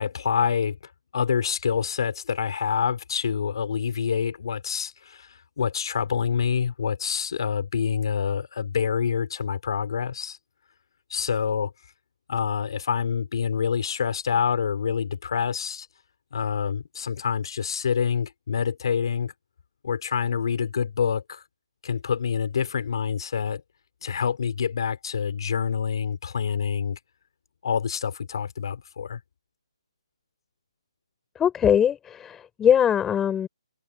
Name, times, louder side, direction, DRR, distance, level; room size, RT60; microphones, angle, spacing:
voice 1, 0.0-10.4 11.1-11.7 12.3-15.9 16.3-19.3 19.8-21.4 21.8-23.6 24.0-27.0 27.6-29.2, left 7 dB, 50° left, 4.5 m, -27 dB
voice 2, 31.3-33.5, left 9 dB, 10° left, 5.0 m, -21 dB
hypercardioid pair, 165°, 3 cm